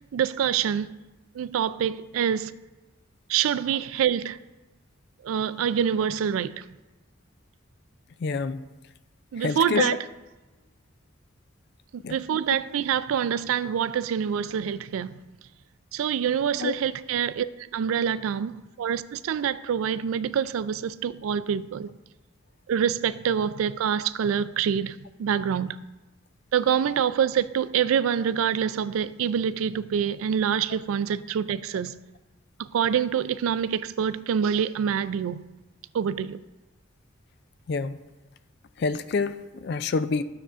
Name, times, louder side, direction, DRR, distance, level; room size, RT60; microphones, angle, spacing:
voice 1, 0.1-0.9 1.4-2.6 3.3-4.4 5.2-6.7 9.3-10.0 12.1-15.2 15.9-17.5 17.7-21.9 22.7-25.8 26.5-31.9 32.6-35.4 35.9-36.4, right 8 dB, 80° right, 0.3 m, -26 dB
voice 2, 8.2-8.6 9.4-9.9 12.0-12.2 16.6-16.7 37.7-38.0 38.8-40.2, left 4 dB, 50° left, 0.3 m, -27 dB
12.5 x 6.6 x 2.5 m
head